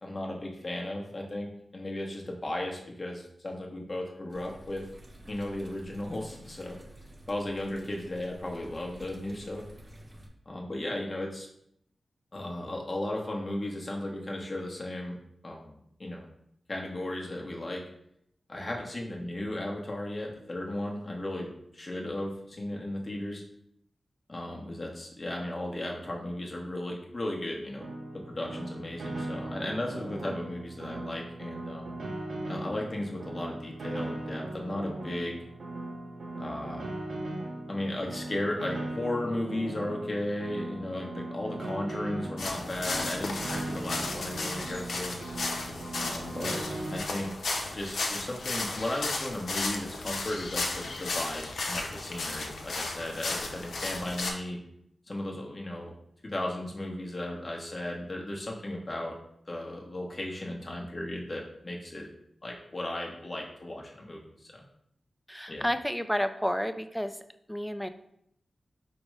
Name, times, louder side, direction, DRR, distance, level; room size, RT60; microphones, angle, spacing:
voice 1, 0.0-4.8 5.3-6.8 7.3-9.7 10.5-11.5 12.3-15.2 15.4-16.3 16.7-17.8 18.5-23.4 24.3-27.9 28.3-31.9 32.5-35.4 36.4-36.9 37.7-45.2 46.0-46.6 46.9-47.3 47.7-54.6 55.1-55.9 56.2-59.1 59.5-62.1 62.4-64.6 65.5-65.7, left 1 dB, 35° left, -1 dB, 1.0 m, -35 dB
sound 1, 4.3-10.3, right 1 dB, 35° right, 0.7 m, -50 dB
Piano, 27.8-47.0, right 2 dB, 75° right, 0.7 m, -38 dB
sound 2, 42.4-54.3, left 3 dB, 85° left, 0.6 m, -34 dB
voice 2, 65.3-67.2 67.5-67.9, equal, ahead, 9 dB, 0.3 m, -30 dB
5.1 x 2.1 x 4.7 m, 0.74 s
wide cardioid pair, 75°, 0 cm